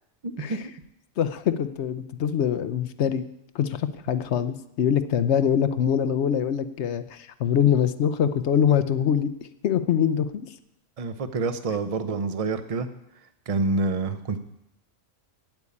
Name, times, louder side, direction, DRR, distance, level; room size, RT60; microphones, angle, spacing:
voice 1, 0.2-0.6 11.0-12.9 13.5-14.4, right 3 dB, 35° right, 10 dB, 0.6 m, -27 dB
voice 2, 1.2-3.3 3.5-9.3 9.6-10.5, left 8 dB, 65° left, 12 dB, 0.9 m, -24 dB
9.1 x 8.3 x 8.5 m, 0.83 s
omnidirectional pair, 1.4 m